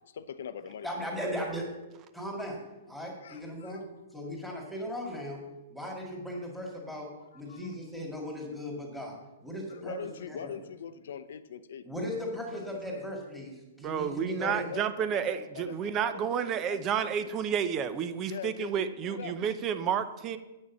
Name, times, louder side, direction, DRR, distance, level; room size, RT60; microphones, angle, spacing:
voice 1, 0.1-1.1 3.2-3.8 7.2-7.8 9.7-12.1 12.7-13.2 14.3-14.8 15.1-17.3 18.3-18.7 19.0-19.4, left 8 dB, 70° left, 12 dB, 0.7 m, -43 dB
voice 2, 0.8-1.6 2.1-2.6 2.9-3.8 4.1-5.4 5.7-9.1 9.4-10.0 10.3-10.5 11.9-13.5 13.8-14.6, equal, ahead, -1 dB, 2.1 m, -37 dB
voice 3, 13.8-20.4, right 8 dB, 25° right, 12 dB, 0.6 m, -30 dB
8.5 x 6.4 x 7.2 m, 1.0 s
hypercardioid pair, 155°, 0 cm